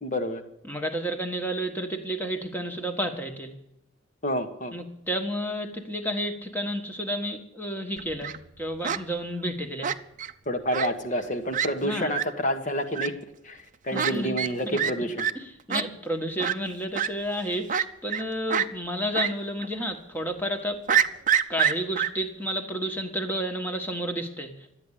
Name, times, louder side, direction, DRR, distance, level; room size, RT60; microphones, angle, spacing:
voice 1, 0.0-0.4 4.2-4.8 10.5-13.1 13.4-15.3, equal, 40° left, 7 dB, 1.4 m, -28 dB
voice 2, 0.7-3.5 4.7-9.9 11.8-12.1 13.9-14.4 14.7-14.8 15.3-21.0 21.5-24.5, equal, 10° left, 4 dB, 1.5 m, -31 dB
Fowl, 8.0-8.4 8.8-9.0 9.8-10.3 10.7-10.9 11.2-11.3 11.5-11.7 12.1-12.2 12.9-13.1 13.9-14.1 14.4-14.5 14.8-14.9 15.2-15.3 15.7-15.8 16.4-16.5 16.9-17.1 17.7-18.2 18.5-18.7 19.1-19.3 19.6-19.7 20.9-22.1, right 8 dB, 40° right, 0.6 m, -25 dB
12.5 x 8.8 x 9.9 m, 0.81 s
head